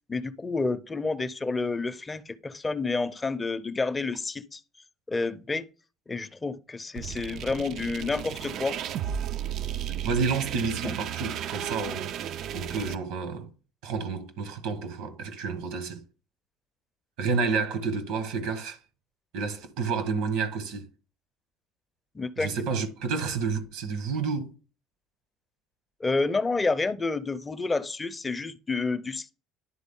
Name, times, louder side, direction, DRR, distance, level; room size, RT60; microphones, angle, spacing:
voice 1, 0.1-4.6 5.1-5.7 6.1-8.8 10.8-10.9 22.1-22.5 26.0-29.3, left 3 dB, 20° left, 0.5 m, -29 dB
sound 1, 7.0-13.0, right 10 dB, 60° right, 0.3 m, -34 dB
voice 2, 10.0-13.5 13.8-16.0 17.2-18.8 19.3-20.9 22.4-24.5, right 5 dB, 75° right, 1.2 m, -30 dB
10.5 x 3.7 x 3.6 m
supercardioid pair, 85°, 0 cm